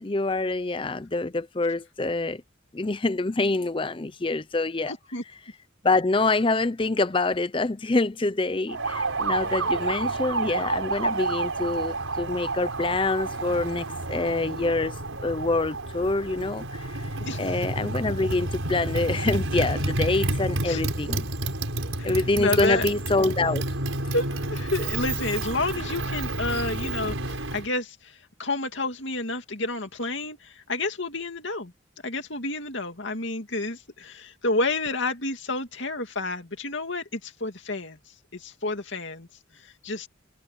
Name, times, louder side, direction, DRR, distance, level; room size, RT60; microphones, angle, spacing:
voice 1, 0.0-2.4 2.7-4.9 5.8-14.9 15.2-16.9 17.4-21.3 22.0-23.6, left 2 dB, 25° left, 0.6 m, -26 dB
voice 2, 4.9-5.2 17.2-17.4 20.6-20.8 22.0-22.9 24.1-28.1 28.4-31.7 32.0-38.0 38.3-39.3 39.8-40.1, left 2 dB, 65° left, 2.5 m, -30 dB
Motorcycle, 8.7-27.7, right 2 dB, 80° right, 5.0 m, -30 dB
head